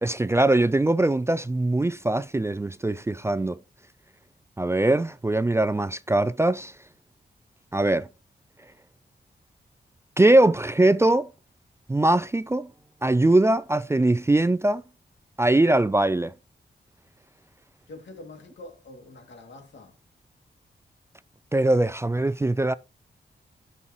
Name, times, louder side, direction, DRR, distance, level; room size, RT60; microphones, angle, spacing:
voice 1, 0.0-3.6 4.6-6.7 7.7-8.1 10.2-11.3 11.9-12.7 13.0-14.8 15.4-16.3 21.5-22.7, right 2 dB, 15° right, 0.3 m, -21 dB
voice 2, 17.9-20.0, left 2 dB, 85° left, 2.4 m, -45 dB
12.5 x 5.6 x 3.0 m
wide cardioid pair, 95°, 18 cm